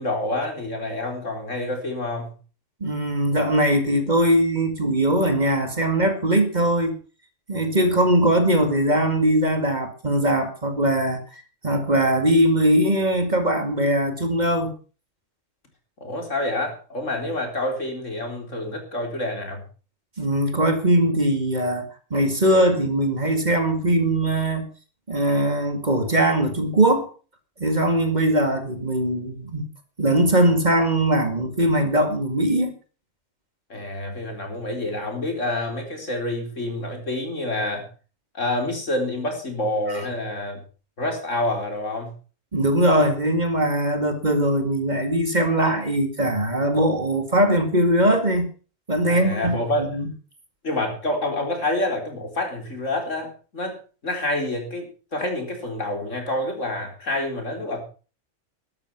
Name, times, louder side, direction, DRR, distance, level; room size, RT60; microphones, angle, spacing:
voice 1, 0.0-2.3 16.0-19.6 33.7-37.9 38.3-40.6 41.0-42.1 49.0-49.9 50.6-57.8, left 1 dB, 75° left, 3 dB, 4.5 m, -27 dB
voice 2, 2.8-7.0 7.5-14.7 20.2-24.7 25.1-27.1 27.6-29.7 30.0-32.7 39.9-40.0 42.5-48.5 48.9-50.1, right 1 dB, 35° right, 7 dB, 2.3 m, -21 dB
13.0 x 12.5 x 5.9 m, 0.37 s
omnidirectional pair, 1.3 m